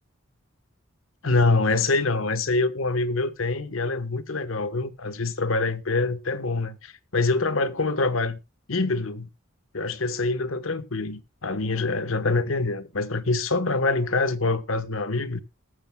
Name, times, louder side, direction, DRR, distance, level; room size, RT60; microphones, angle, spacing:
voice 1, 1.2-8.4 8.7-9.3 9.7-15.4, left 3 dB, 75° left, 1.2 m, -25 dB
20.0 x 8.0 x 2.3 m
head